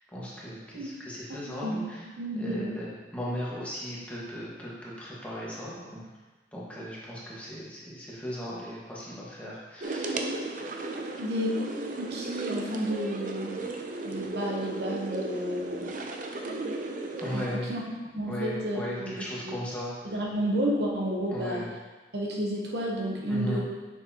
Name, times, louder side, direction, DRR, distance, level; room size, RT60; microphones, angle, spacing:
voice 1, 0.1-2.0 2.4-6.0 6.5-10.3 17.2-17.7 18.3-19.9 21.3-21.7 23.3-23.6, equal, 10° left, -7 dB, 1.4 m, -37 dB
voice 2, 1.3-1.8 2.2-2.8 11.2-11.7 12.0-13.7 14.0-15.9 16.4-16.8 17.3-17.8 18.1-19.6 20.0-21.7 22.1-23.6, equal, 65° right, -1 dB, 1.0 m, -31 dB
sound 1, 9.8-17.6, right 2 dB, 50° right, 0.6 m, -35 dB
6.5 x 6.3 x 2.9 m, 1.3 s
head